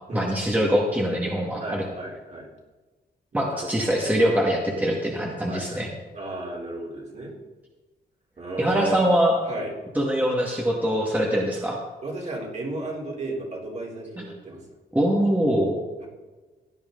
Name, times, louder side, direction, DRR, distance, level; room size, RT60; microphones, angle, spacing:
voice 1, 0.1-1.8 3.3-5.9 8.6-9.4 10.0-11.8 14.2-14.3 14.9-15.8, equal, 10° right, -2 dB, 2.0 m, -23 dB
voice 2, 1.6-2.5 3.3-3.7 5.5-5.8 6.1-7.3 8.4-9.1 9.5-9.7 11.3-11.4 12.0-14.6, right 2 dB, 40° right, -2 dB, 3.7 m, -34 dB
16.5 x 10.5 x 3.9 m, 1.3 s
cardioid pair, 95°, 18 cm